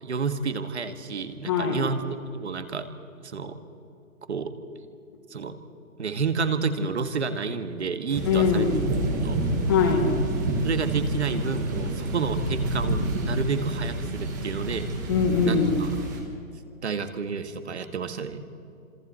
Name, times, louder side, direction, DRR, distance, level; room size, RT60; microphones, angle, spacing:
voice 1, 0.0-2.9 3.2-3.6 4.3-4.5 5.3-5.6 6.0-8.7 9.2-9.4 10.6-14.9 15.4-15.9 16.8-18.4, right 5 dB, 50° right, 9 dB, 1.7 m, -30 dB
voice 2, 1.4-1.9 8.2-8.8 9.7-10.1 15.1-15.8, left 6 dB, 15° left, -1 dB, 1.2 m, -22 dB
sound 1, 8.1-16.2, right 1 dB, 15° right, 1.4 m, -28 dB
29.0 x 26.5 x 4.4 m, 2.6 s
hypercardioid pair, 175°, 42 cm